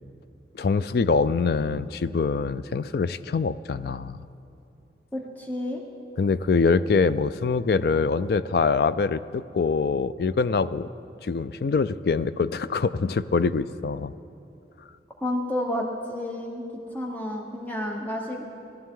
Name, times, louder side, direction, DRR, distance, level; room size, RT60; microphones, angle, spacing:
voice 1, 0.5-4.2 6.2-10.9 11.2-14.1, left 4 dB, 60° left, 15 dB, 0.3 m, -24 dB
voice 2, 5.1-5.8 15.2-16.6 16.9-18.4, left 1 dB, 10° left, 0 dB, 1.1 m, -30 dB
19.5 x 12.5 x 3.8 m, 2.6 s
head